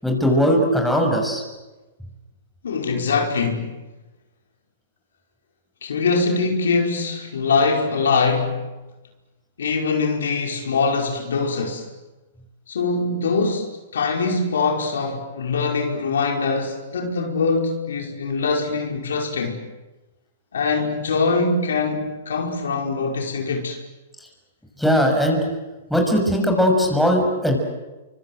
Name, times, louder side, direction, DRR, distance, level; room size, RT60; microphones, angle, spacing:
voice 1, 0.0-1.4 24.8-25.4 25.9-27.6, equal, ahead, 6.9 m, -19 dB
voice 2, 2.6-3.8 5.8-8.6 9.6-11.9 12.7-19.6 20.5-23.8, left 4 dB, 80° left, 5.2 m, -23 dB
29.5 x 25.0 x 7.9 m
hypercardioid pair, 125°, 0 cm